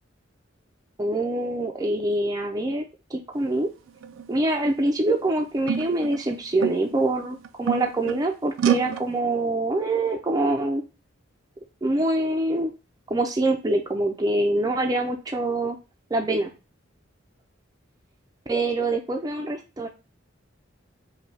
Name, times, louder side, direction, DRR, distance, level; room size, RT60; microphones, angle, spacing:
voice 1, 1.0-2.8 3.1-3.7 4.3-10.8 11.8-12.7 13.1-15.8 16.1-16.5 18.5-19.9, right 2 dB, 20° right, 2 dB, 0.5 m, -25 dB
sound 1, 3.9-4.3 5.0-5.1 5.7-7.0 7.4-8.3 8.6-9.0, right 8 dB, 85° right, 0.4 m, -27 dB
5.3 x 2.3 x 3.3 m, 0.30 s
head